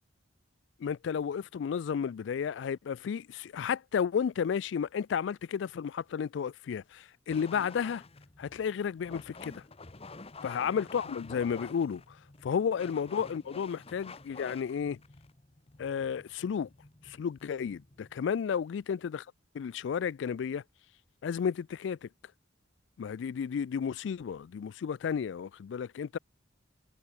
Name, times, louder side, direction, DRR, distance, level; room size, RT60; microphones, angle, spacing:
voice 1, 0.8-8.0 8.4-9.6 10.4-12.0 12.4-15.0 15.8-16.7 17.0-19.2 19.5-20.6 21.2-22.1 23.0-26.2, left 7 dB, 65° left, 0.3 m, -32 dB
sound 1, 7.3-18.4, left 3 dB, 30° left, 1.2 m, -49 dB
head